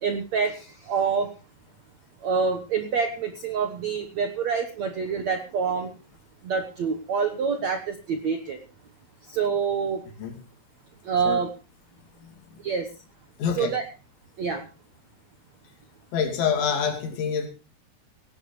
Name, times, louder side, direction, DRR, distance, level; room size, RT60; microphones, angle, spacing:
voice 1, 0.0-1.3 2.2-5.9 6.4-8.6 9.3-10.0 11.0-11.5 12.6-12.9 13.6-13.8 14.4-14.6, right 6 dB, 70° right, 6 dB, 1.7 m, -26 dB
voice 2, 12.2-12.6 13.4-13.7 16.1-17.5, left 7 dB, 80° left, 4 dB, 5.0 m, -27 dB
18.5 x 16.5 x 3.2 m, 0.32 s
omnidirectional pair, 5.2 m